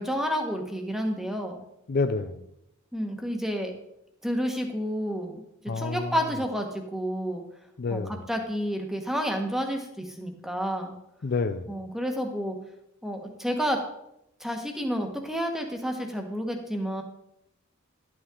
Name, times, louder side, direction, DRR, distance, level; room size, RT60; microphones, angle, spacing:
voice 1, 0.0-1.5 2.9-3.7 4.2-5.4 5.7-7.4 7.9-10.9 11.7-12.6 13.0-13.8 14.4-17.0, equal, ahead, 3 dB, 1.3 m, -30 dB
voice 2, 1.9-2.4 5.7-6.2 7.8-8.2 11.2-11.7, left 4 dB, 45° left, 9 dB, 0.5 m, -28 dB
12.0 x 8.5 x 3.8 m, 0.82 s
head